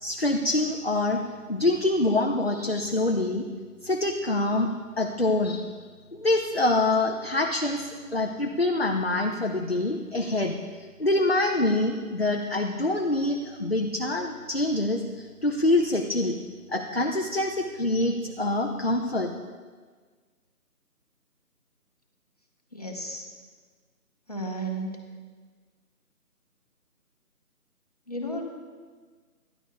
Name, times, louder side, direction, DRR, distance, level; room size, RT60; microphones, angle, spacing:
voice 1, 0.0-1.2 1.5-3.4 3.8-4.7 5.0-5.7 6.1-10.6 11.0-16.4 16.7-19.3, left 2 dB, 40° left, 2 dB, 0.6 m, -25 dB
voice 2, 22.7-23.3 24.3-24.9 28.1-28.4, right 1 dB, 25° left, 0 dB, 1.0 m, -33 dB
25.0 x 10.5 x 2.2 m, 1.5 s
figure-of-eight pair, 175°, 46 cm